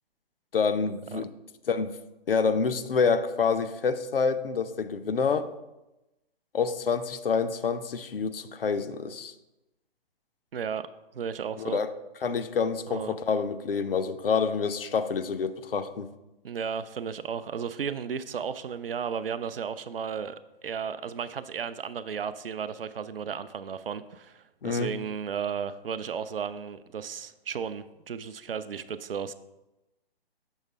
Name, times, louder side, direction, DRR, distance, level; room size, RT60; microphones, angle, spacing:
voice 1, 0.5-1.3 1.7-2.0 2.3-5.5 6.5-9.3 11.6-11.9 12.2-16.1 24.6-24.9, left 5 dB, 65° left, 10 dB, 0.6 m, -27 dB
voice 2, 10.5-10.9 11.1-11.8 12.9-13.2 16.4-29.3, right 7 dB, 70° right, 13 dB, 0.4 m, -34 dB
6.4 x 3.2 x 5.3 m, 0.98 s
figure-of-eight pair, 130°, 30 cm